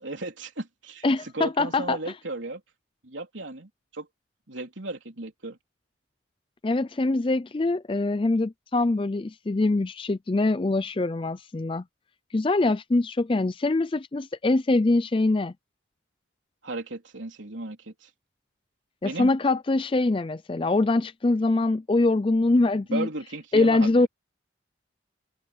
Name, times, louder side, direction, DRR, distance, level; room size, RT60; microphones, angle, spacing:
voice 1, 0.0-2.6 3.0-4.1 4.5-5.6 16.6-18.1 19.0-19.3 22.9-24.1, right 2 dB, 75° right, 3.5 m, -35 dB
voice 2, 1.0-2.0 6.6-11.8 12.3-15.5 19.0-23.1 23.5-24.1, left 2 dB, 25° left, 0.4 m, -23 dB
head